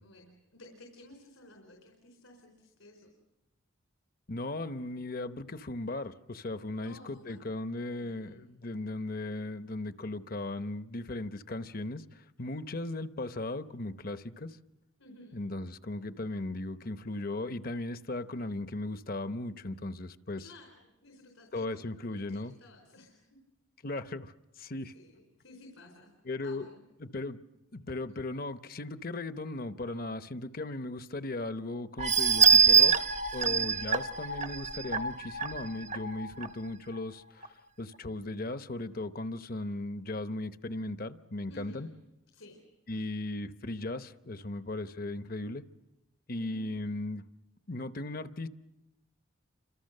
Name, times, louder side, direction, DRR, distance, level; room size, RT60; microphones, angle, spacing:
voice 1, 0.0-3.1 6.8-7.5 7.9-8.4 15.0-15.4 20.4-21.8 22.1-23.4 24.8-26.1 26.4-26.8 33.4-33.7 41.5-41.9 42.3-42.6 42.9-43.1 46.4-46.9, left 1 dB, 85° left, 2 dB, 4.4 m, -54 dB
voice 2, 4.3-14.6 15.3-20.5 21.5-22.5 23.8-24.9 26.2-26.6 27.0-27.4 27.7-33.0 33.3-41.9 42.9-45.6 46.3-47.2 47.7-48.5, left 2 dB, 45° left, 11 dB, 0.9 m, -37 dB
sound 1, 32.0-36.5 37.0-37.1 37.4-37.5, right 6 dB, 35° right, 0.8 m, -25 dB
29.5 x 26.0 x 6.6 m, 0.97 s
head